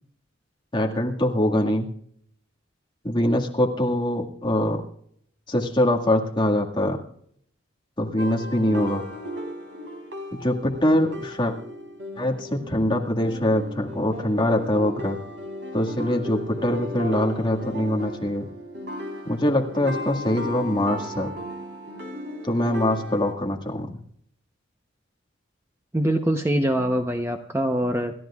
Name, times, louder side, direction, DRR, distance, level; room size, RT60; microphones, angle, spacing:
voice 1, 0.7-1.9 3.0-4.8 5.5-7.0 8.0-9.0 10.3-11.5 12.2-15.2 15.7-18.5 19.3-21.3 22.4-24.0, left 1 dB, 25° left, 0 dB, 1.9 m, -23 dB
sound 1, 8.2-23.3, left 1 dB, 60° right, 3.9 m, -36 dB
voice 2, 25.9-28.1, right 1 dB, 15° right, 4 dB, 0.8 m, -23 dB
28.5 x 13.5 x 2.4 m, 0.66 s
head